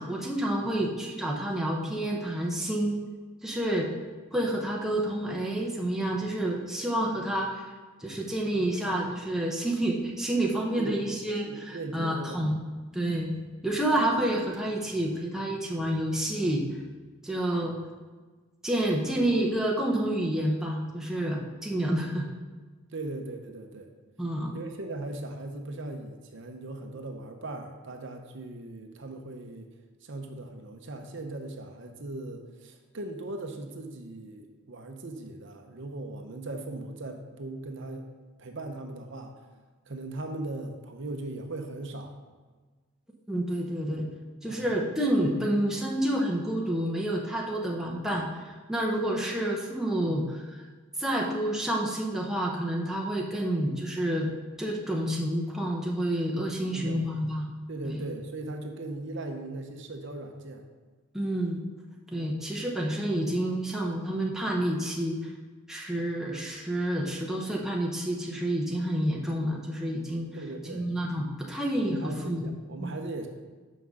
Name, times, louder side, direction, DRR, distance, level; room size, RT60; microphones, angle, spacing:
voice 1, 0.0-3.0 3.4-3.9 4.3-7.7 8.0-12.6 12.9-13.4 13.6-16.7 17.2-17.7 18.6-22.3 24.2-24.6 43.3-44.1 44.4-50.6 51.0-54.3 54.6-57.5 57.8-58.0 61.1-61.6 62.1-65.3 65.7-70.3 70.6-72.5 72.8-72.9, right 1 dB, ahead, -2 dB, 0.7 m, -29 dB
voice 2, 10.8-12.5 17.6-17.8 22.9-23.9 24.5-29.7 30.0-38.1 38.4-39.3 39.9-42.1 44.5-44.7 50.1-50.2 56.7-57.1 57.7-60.6 70.3-70.9 71.8-73.3, right 2 dB, 55° right, 4 dB, 0.8 m, -39 dB
5.8 x 5.2 x 6.4 m, 1.4 s
head